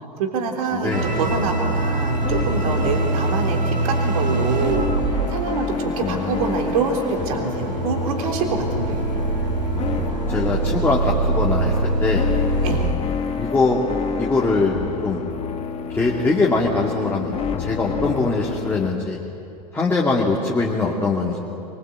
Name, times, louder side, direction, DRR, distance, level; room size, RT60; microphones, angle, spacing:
voice 1, 0.2-4.9 5.3-9.0 12.6-12.8, right 5 dB, 55° right, 2 dB, 3.6 m, -25 dB
voice 2, 0.7-1.1 6.0-6.5 10.3-11.7 12.0-12.3 13.3-13.8 14.2-14.8 15.0-15.2 15.9-17.3 17.6-19.2 19.7-21.4, left 3 dB, 10° left, -3 dB, 2.5 m, -22 dB
sound 1, 0.9-12.9, right 2 dB, 80° right, 2.5 m, -24 dB
sound 2, 1.0-18.9, left 6 dB, 30° left, 2.0 m, -29 dB
24.0 x 21.5 x 8.0 m, 2.8 s
figure-of-eight pair, 85°, 21 cm